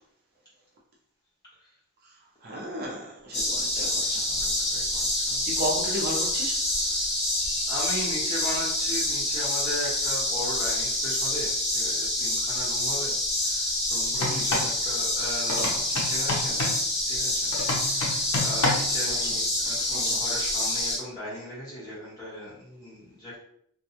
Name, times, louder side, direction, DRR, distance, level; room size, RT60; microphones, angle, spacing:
voice 1, 2.4-4.3 5.5-6.7 7.4-7.7 14.3-14.4 16.6-16.8 18.1-18.2 19.0-19.4 19.9-20.2, right 1 dB, 45° right, -3 dB, 0.5 m, -35 dB
sound 1, 3.3-21.0, left 1 dB, 45° left, 1.2 m, -27 dB
voice 2, 4.3-5.4 6.8-7.1 7.7-13.2 13.4-16.6 17.1-23.4, left 1 dB, 15° left, -8 dB, 1.2 m, -38 dB
sound 2, 14.1-14.7 15.5-16.8 17.5-19.0, left 2 dB, 85° left, 0.7 m, -29 dB
2.5 x 2.2 x 2.8 m, 0.68 s
head